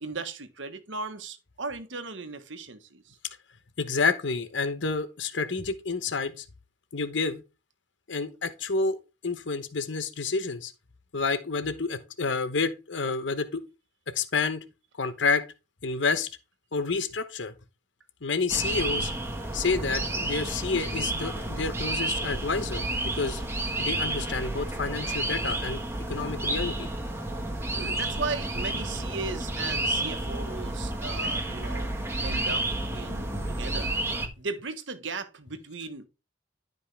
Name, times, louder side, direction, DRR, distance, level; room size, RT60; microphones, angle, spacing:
voice 1, 0.0-3.2 27.7-31.9 32.2-32.7 32.9-33.9 34.4-36.1, right 4 dB, 75° right, 1.4 m, -36 dB
voice 2, 3.8-6.4 6.9-7.4 8.1-10.7 11.1-13.6 14.1-14.6 15.0-15.4 15.8-16.3 16.7-17.5 18.2-19.1 19.5-22.8 23.1-23.4 23.8-25.8 26.1-26.9, left 4 dB, 70° left, 1.0 m, -29 dB
sound 1, 18.5-34.3, right 1 dB, 15° right, 1.6 m, -31 dB
12.0 x 5.3 x 3.4 m
head